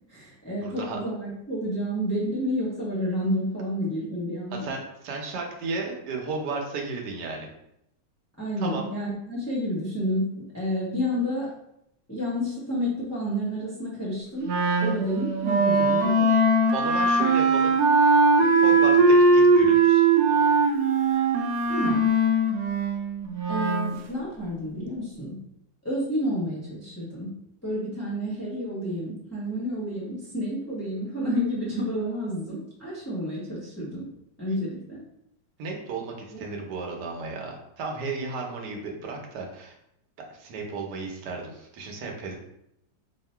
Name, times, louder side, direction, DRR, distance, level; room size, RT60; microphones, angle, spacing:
voice 1, 0.1-4.7 8.4-10.3 10.5-11.5 12.1-14.5 14.8-16.3 21.7-22.1 23.5-25.3 25.8-27.3 27.6-34.0 34.4-35.0 36.3-36.4, equal, 15° left, -8 dB, 0.6 m, -30 dB
voice 2, 0.6-1.0 4.5-7.5 8.6-8.8 16.7-17.7 18.4-20.1 35.6-39.7 40.3-42.3, right 3 dB, 70° right, 1 dB, 1.3 m, -34 dB
Wind instrument woodwind instrument, 14.5-23.9, right 3 dB, 85° right, 1.3 m, -20 dB
2.8 x 2.7 x 4.3 m, 0.77 s
omnidirectional pair, 1.9 m